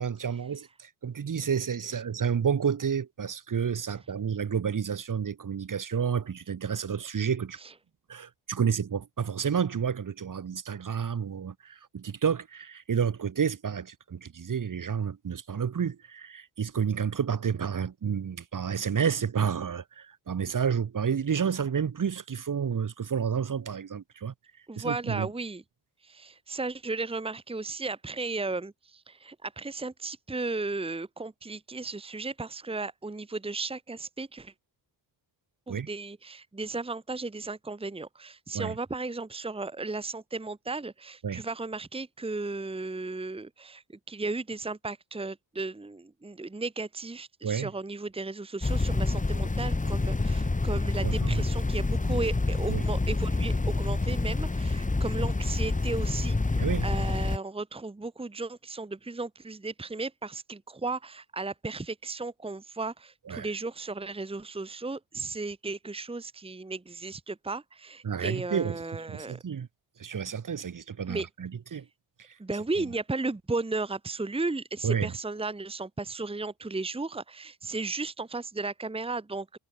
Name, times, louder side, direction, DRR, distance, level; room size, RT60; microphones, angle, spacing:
voice 1, 0.0-7.6 8.1-24.3 24.8-25.3 35.7-35.9 38.5-38.7 41.2-41.5 47.4-47.7 51.0-51.4 52.7-52.8 56.6-56.9 63.3-63.5 68.0-68.8 69.1-69.7 70.0-71.9 72.2-72.3 74.8-75.1, right 7 dB, 45° right, 2.1 m, -30 dB
voice 2, 24.7-25.6 26.0-34.5 35.7-69.4 71.1-71.3 72.4-79.6, right 3 dB, 10° right, 1.4 m, -35 dB
sound 1, 48.6-57.4, left 3 dB, 15° left, 2.5 m, -27 dB
cardioid pair, 100°, 45 cm